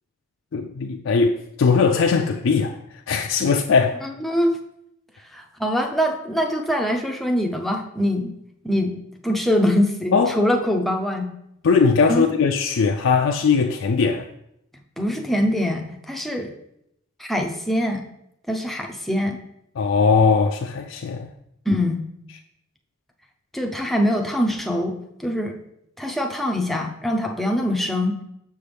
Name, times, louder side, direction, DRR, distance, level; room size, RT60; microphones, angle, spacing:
voice 1, 0.5-2.8 3.1-4.0 10.1-10.4 11.6-14.2 19.8-21.3, left 5 dB, 70° left, 0.4 m, -19 dB
voice 2, 4.0-4.6 5.3-8.3 8.6-8.9 9.2-11.3 12.1-12.3 15.0-16.5 17.2-18.0 18.5-19.4 21.7-22.0 23.5-25.5 26.0-28.2, equal, ahead, 0.6 m, -23 dB
6.8 x 5.6 x 3.4 m
head